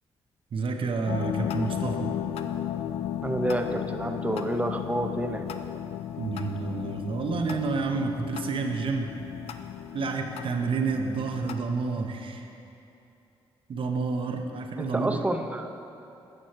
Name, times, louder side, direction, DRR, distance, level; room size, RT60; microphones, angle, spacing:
voice 1, 0.5-2.1 6.2-9.1 9.9-12.4 13.7-15.2, right 4 dB, 60° right, 4 dB, 0.8 m, -29 dB
sound 1, 1.1-11.5, left 10 dB, 80° left, 0.4 m, -34 dB
voice 2, 3.2-5.5 14.8-15.7, right 1 dB, 15° right, 5 dB, 0.6 m, -29 dB
8.8 x 6.1 x 4.5 m, 2.8 s
cardioid pair, 70°, 10 cm